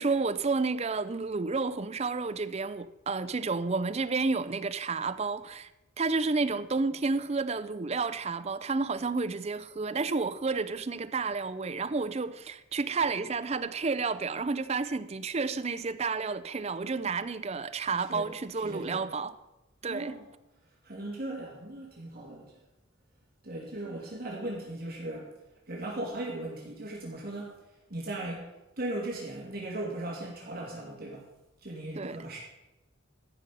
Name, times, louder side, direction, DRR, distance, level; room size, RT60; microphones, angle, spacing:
voice 1, 0.0-5.7 6.0-19.3 19.8-20.2 31.9-32.2, right 4 dB, 30° right, 0.5 m, -31 dB
voice 2, 18.6-19.0 19.8-20.3 20.8-22.5 23.4-25.3 25.7-27.6 27.9-28.5 28.8-31.2 31.6-32.4, right 1 dB, 45° right, 2.9 m, -37 dB
14.0 x 5.5 x 6.7 m
head